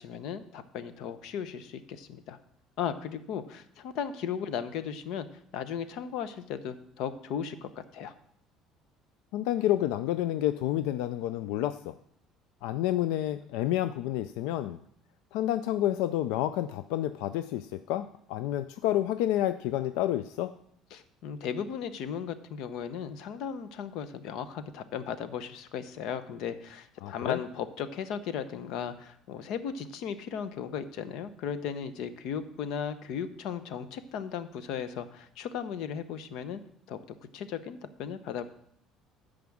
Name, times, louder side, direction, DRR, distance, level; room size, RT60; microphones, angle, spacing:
voice 1, 0.0-2.4 2.8-5.3 5.5-8.1 20.9-36.6 36.9-37.0 37.3-38.4, left 7 dB, 65° left, 12 dB, 0.8 m, -36 dB
voice 2, 9.3-11.9 12.6-14.8 15.3-20.5 27.0-27.4, left 13 dB, 90° left, 12 dB, 0.4 m, -29 dB
9.5 x 5.1 x 7.1 m, 0.68 s
cardioid pair, 155°, 0 cm